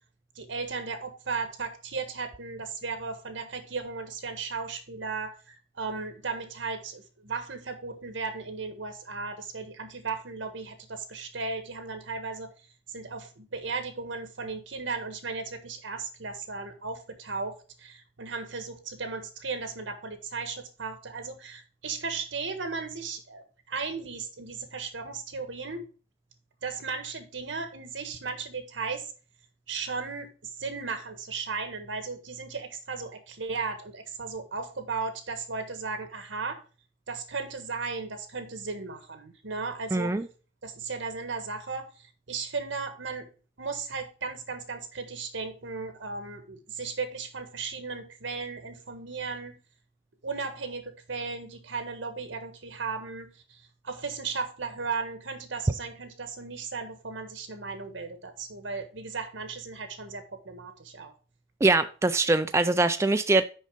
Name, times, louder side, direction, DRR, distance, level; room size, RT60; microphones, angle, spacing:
voice 1, 0.3-12.5 12.9-25.9 26.6-29.1 29.7-36.6 37.1-40.1 40.6-43.3 43.6-49.6 50.2-61.1, right 4 dB, 80° right, 1.4 m, -36 dB
voice 2, 39.9-40.3 61.6-63.4, right 2 dB, 15° right, 0.3 m, -23 dB
6.3 x 5.4 x 5.1 m
head